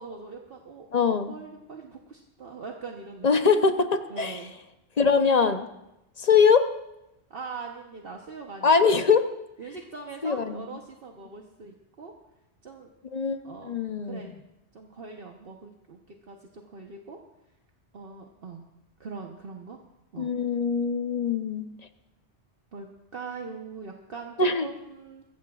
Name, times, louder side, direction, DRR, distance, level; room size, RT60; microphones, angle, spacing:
voice 1, 0.0-3.3 4.1-4.5 7.3-9.0 9.6-12.1 12.6-12.9 13.4-13.8 14.0-14.3 14.7-17.2 17.9-18.6 19.0-19.8 20.1-20.3 22.7-22.9 23.1-25.2, right 4 dB, 55° right, 1 dB, 1.2 m, -41 dB
voice 2, 0.9-1.3 3.2-4.4 5.0-5.7 6.2-6.7 8.6-9.2 10.2-10.6 13.1-13.4 13.6-14.2 20.2-21.7 24.4-24.7, left 5 dB, 40° left, 8 dB, 0.7 m, -22 dB
22.0 x 14.5 x 2.4 m, 0.89 s
omnidirectional pair, 1.2 m